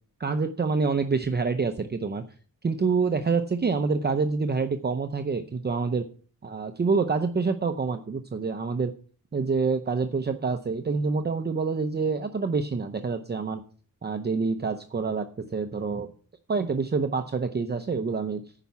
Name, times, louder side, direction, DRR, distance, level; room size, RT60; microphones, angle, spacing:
voice 1, 0.2-2.2 2.6-6.0 6.4-8.9 9.3-13.6 14.0-16.1 16.5-18.4, right 4 dB, 30° right, 7 dB, 0.7 m, -27 dB
9.9 x 5.8 x 8.4 m, 0.43 s
wide cardioid pair, 120°, 36 cm